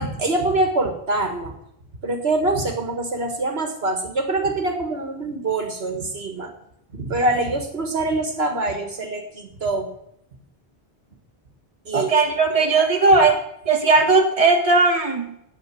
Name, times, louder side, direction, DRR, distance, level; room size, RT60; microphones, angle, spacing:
voice 1, 0.0-1.5 2.0-6.5 6.9-9.9 11.9-12.1 12.5-12.9, right 2 dB, 65° right, 5 dB, 1.9 m, -24 dB
voice 2, 11.9-13.4 13.7-15.3, right 3 dB, 35° right, 2 dB, 1.7 m, -17 dB
9.3 x 9.0 x 7.0 m, 0.76 s
omnidirectional pair, 1.1 m